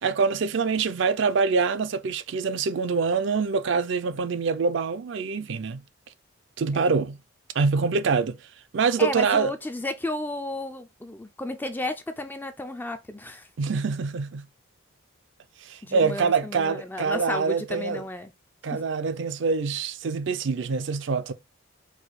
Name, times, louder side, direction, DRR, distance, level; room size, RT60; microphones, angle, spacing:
voice 1, 0.0-5.8 6.6-7.2 7.5-8.4 8.7-9.5 13.6-14.4 15.6-18.0 18.6-21.3, right 5 dB, 55° right, 0.4 m, -25 dB
voice 2, 9.0-13.5 15.8-18.3 18.7-18.8, left 1 dB, 10° left, 0.3 m, -33 dB
4.8 x 2.2 x 4.0 m
head